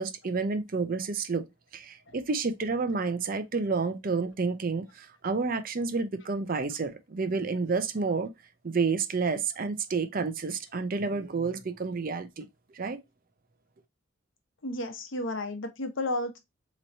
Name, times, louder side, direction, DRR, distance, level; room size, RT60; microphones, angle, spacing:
voice 1, 0.0-1.5 1.7-8.3 8.6-12.4 12.7-13.0, right 4 dB, 45° right, 0.5 m, -30 dB
voice 2, 14.6-16.4, left 1 dB, 70° left, 0.9 m, -32 dB
4.3 x 3.1 x 2.6 m
head